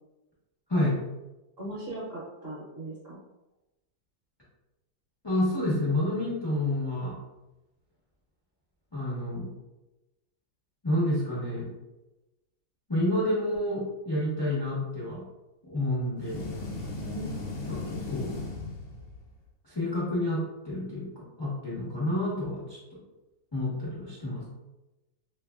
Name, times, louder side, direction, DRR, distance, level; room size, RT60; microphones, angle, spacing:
voice 1, 1.6-3.2 17.0-17.4, right 1 dB, 40° right, -8 dB, 1.0 m, -38 dB
voice 2, 5.2-7.1 8.9-9.5 10.8-11.7 12.9-15.2 15.6-16.5 17.7-18.3 19.6-22.8 23.5-24.5, left 1 dB, 30° left, -7 dB, 0.4 m, -29 dB
sound 1, 16.2-19.3, left 2 dB, 75° left, 1.5 m, -37 dB
3.2 x 3.2 x 2.3 m, 1.0 s
omnidirectional pair, 2.0 m